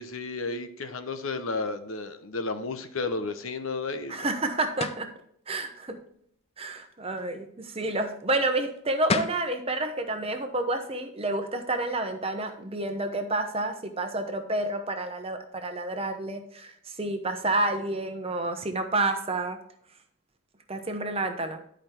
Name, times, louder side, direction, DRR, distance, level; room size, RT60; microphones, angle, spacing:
voice 1, 0.0-4.2, left 3 dB, 75° left, 9 dB, 0.9 m, -32 dB
voice 2, 4.1-5.1 5.5-6.0 6.6-19.6 20.7-21.6, right 2 dB, 25° right, 7 dB, 0.9 m, -29 dB
sound 1, 4.8-5.1 8.8-8.9 9.1-9.5, left 4 dB, 30° left, 0.5 m, -28 dB
10.5 x 5.1 x 4.4 m, 0.68 s
head